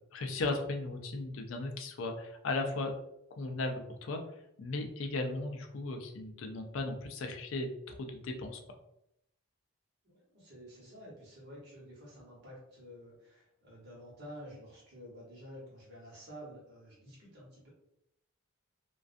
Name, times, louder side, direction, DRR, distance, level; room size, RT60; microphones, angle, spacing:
voice 1, 0.1-2.9 3.3-4.2 4.6-8.6, left 2 dB, 60° left, 4 dB, 0.4 m, -36 dB
voice 2, 10.0-17.7, equal, 50° right, -5 dB, 1.1 m, -50 dB
2.4 x 2.2 x 2.5 m, 0.79 s
head